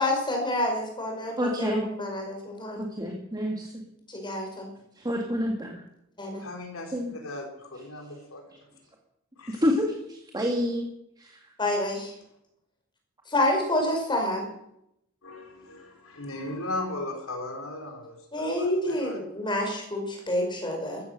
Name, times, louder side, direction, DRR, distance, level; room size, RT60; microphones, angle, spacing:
voice 1, 0.0-2.8 4.1-4.7 6.2-6.4 11.6-12.1 13.3-14.4 18.3-21.0, left 1 dB, 20° left, 2 dB, 5.1 m, -28 dB
voice 2, 1.4-1.9 2.8-3.7 5.0-5.8 6.9-7.1 9.5-10.9 11.2-11.4, equal, 20° right, 1 dB, 1.9 m, -28 dB
voice 3, 6.4-8.4 9.4-9.6 15.2-19.2, left 2 dB, 70° left, 3 dB, 4.3 m, -37 dB
14.5 x 14.5 x 6.6 m, 0.81 s
head